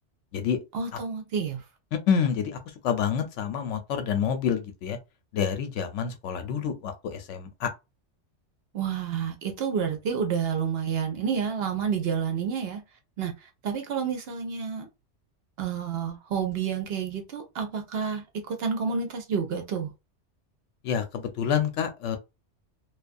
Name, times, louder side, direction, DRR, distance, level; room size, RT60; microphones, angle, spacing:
voice 1, 0.7-1.6 8.7-12.8 13.2-13.3 13.6-14.9 15.6-19.9, right 6 dB, 60° right, 0.8 m, -29 dB
voice 2, 1.9-2.6 2.8-5.0 5.3-7.7 20.8-22.2, left 7 dB, 80° left, 0.9 m, -27 dB
2.3 x 2.3 x 2.5 m
omnidirectional pair, 1.2 m